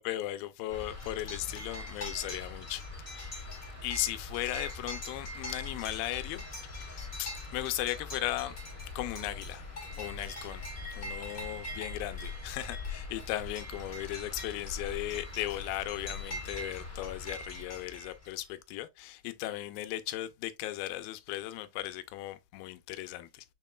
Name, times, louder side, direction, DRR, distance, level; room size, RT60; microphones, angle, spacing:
voice 1, 0.0-2.8 3.1-3.5 3.8-8.6 8.9-9.7 10.0-10.7 11.0-23.5, left 15 dB, 85° left, 2.3 m, -37 dB
sound 1, 0.7-18.5, left 2 dB, 40° left, 0.9 m, -41 dB
6.4 x 3.7 x 2.2 m
omnidirectional pair, 4.1 m